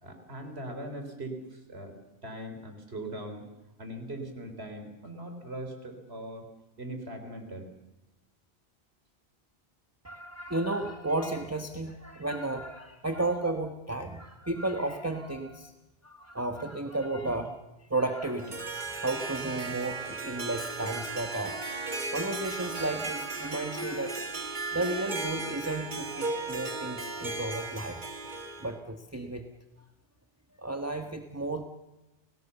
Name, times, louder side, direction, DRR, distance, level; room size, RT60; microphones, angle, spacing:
voice 1, 0.0-1.9 2.2-3.4 3.8-6.5 6.8-7.6, right 1 dB, 75° right, 5 dB, 4.2 m, -40 dB
voice 2, 10.0-15.7 16.0-24.1 24.4-28.0 28.6-29.4 30.6-31.6, right 2 dB, 15° right, 5 dB, 1.3 m, -33 dB
Harp, 18.2-28.7, right 3 dB, 45° right, 1.9 m, -36 dB
29.5 x 18.5 x 7.0 m, 1.0 s
omnidirectional pair, 1.1 m